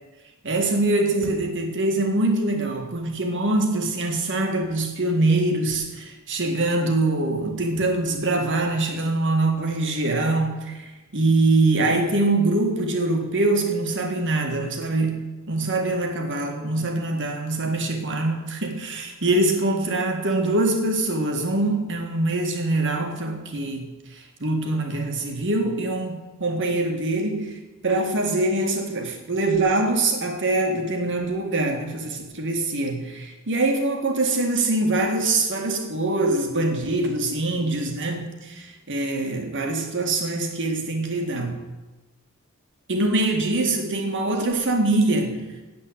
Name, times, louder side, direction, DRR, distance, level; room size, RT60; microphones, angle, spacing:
voice 1, 0.4-41.6 42.9-45.5, right 2 dB, 60° right, 4 dB, 1.8 m, -24 dB
8.6 x 7.9 x 8.6 m, 1.1 s
head